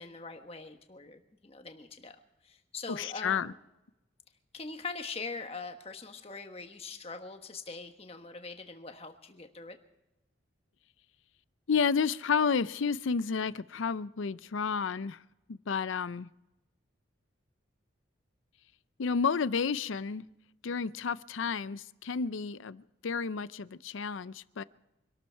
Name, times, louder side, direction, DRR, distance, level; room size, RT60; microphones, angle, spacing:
voice 1, 0.0-2.1 2.4-3.5 4.5-9.8, left 4 dB, 30° left, 5 dB, 1.3 m, -42 dB
voice 2, 2.9-3.5 11.7-15.2 15.5-16.3 19.0-20.2 20.6-24.6, left 5 dB, 80° left, 17 dB, 0.5 m, -31 dB
25.0 x 12.5 x 4.6 m, 0.94 s
head